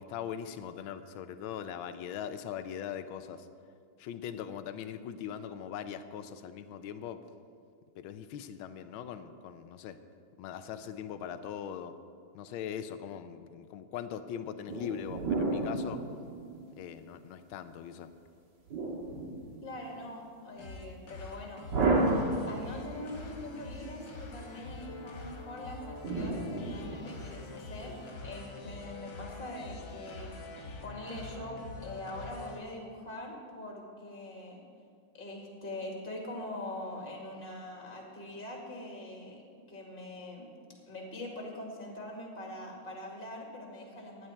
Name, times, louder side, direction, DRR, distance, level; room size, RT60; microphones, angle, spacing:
voice 1, 0.0-3.5 4.0-7.2 8.0-10.0 10.4-11.9 12.3-16.0 16.8-18.1, left 8 dB, 85° left, 11 dB, 1.5 m, -40 dB
sound 1, 14.7-17.0 18.7-19.9 21.7-23.0 26.0-27.5, right 2 dB, 60° right, 2.4 m, -32 dB
voice 2, 19.6-21.6 22.4-28.0 28.2-34.6 35.1-39.4 39.7-40.5 40.9-44.3, left 1 dB, 25° left, -1 dB, 2.3 m, -43 dB
sound 2, 20.6-32.6, left 3 dB, 55° left, 1.8 m, -45 dB
16.0 x 10.0 x 4.6 m, 2.3 s
omnidirectional pair, 2.2 m